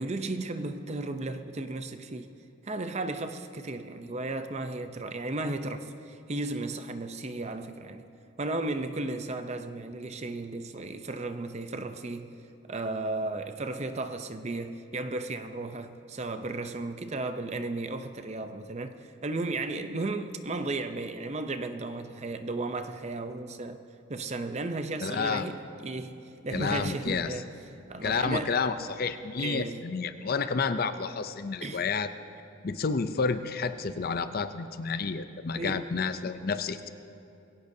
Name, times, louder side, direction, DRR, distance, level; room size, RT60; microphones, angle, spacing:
voice 1, 0.0-2.3 2.6-8.0 8.4-12.3 12.7-19.0 19.2-23.8 24.1-27.5 27.9-28.6 29.4-29.8 31.6-31.8 35.6-35.9, right 2 dB, 30° right, 0.6 m, -34 dB
voice 2, 25.0-25.5 26.5-27.3 28.0-32.1 32.6-36.9, left 5 dB, 45° left, 0.5 m, -30 dB
22.0 x 17.0 x 2.7 m
head